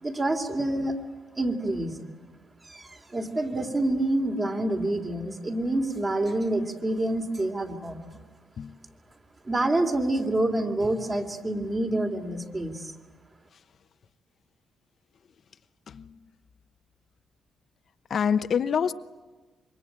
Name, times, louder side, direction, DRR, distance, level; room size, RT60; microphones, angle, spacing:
voice 1, 0.0-1.0 1.4-2.0 2.6-8.0 9.4-12.9, right 1 dB, 25° right, 4 dB, 2.9 m, -27 dB
voice 2, 18.1-18.9, left 7 dB, 55° left, 11 dB, 0.8 m, -26 dB
26.5 x 23.5 x 8.9 m, 1.3 s
cardioid pair, 100°, 0 cm